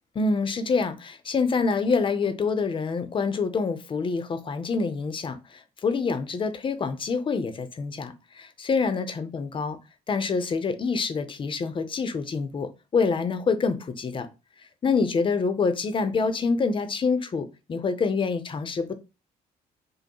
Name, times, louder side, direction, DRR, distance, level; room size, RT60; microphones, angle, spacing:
voice 1, 0.1-9.8 10.1-14.3 14.8-18.9, left 4 dB, 30° left, 0.6 m, -26 dB
5.2 x 2.1 x 2.9 m
cardioid pair, 110°, 17 cm